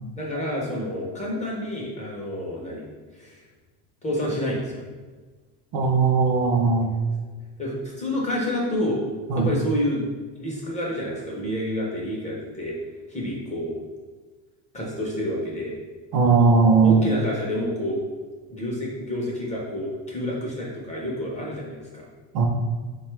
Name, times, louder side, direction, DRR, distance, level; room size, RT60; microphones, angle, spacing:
voice 1, 0.2-2.9 3.1-3.4 4.0-4.9 7.6-9.0 9.3-10.1 10.4-12.8 13.1-13.8 14.7-15.7 16.8-18.0 18.5-22.0, left 1 dB, 20° left, -4 dB, 0.4 m, -29 dB
voice 2, 5.7-7.0 9.3-9.5 16.1-17.1 22.3-22.5, right 4 dB, 55° right, 3 dB, 0.6 m, -18 dB
4.0 x 2.2 x 3.1 m, 1.4 s
cardioid pair, 140°, 43 cm